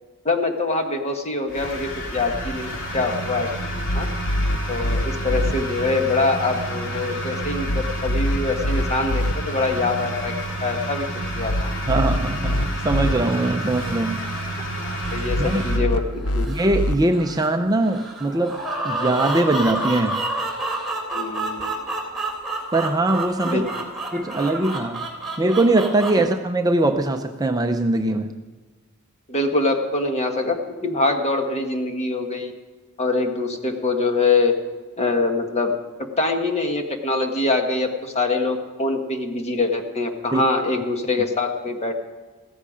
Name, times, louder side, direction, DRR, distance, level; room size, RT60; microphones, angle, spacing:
voice 1, 0.2-2.7 2.9-3.5 3.7-4.1 4.7-10.3 10.6-11.0 11.3-11.7 13.8-14.0 14.6-16.5 21.1-21.7 23.4-23.7 26.2-26.3 29.3-30.6 30.8-32.5 33.0-34.5 35.0-35.7 36.2-42.1, left 3 dB, 30° left, 4 dB, 1.5 m, -24 dB
sound 1, 1.5-15.8, right 1 dB, 60° left, 3.0 m, -30 dB
sound 2, 3.6-5.5 7.4-9.3 11.2-13.1 15.0-17.0, left 1 dB, 80° left, 0.8 m, -25 dB
voice 2, 11.9-14.2 15.4-15.8 16.5-18.6 18.8-20.2 22.7-23.6 24.1-25.1 25.4-28.3 40.3-40.4, right 2 dB, 15° right, 5 dB, 0.6 m, -21 dB
sound 3, 12.4-26.1, right 2 dB, ahead, 3.2 m, -30 dB
15.5 x 14.0 x 5.0 m, 1.4 s
head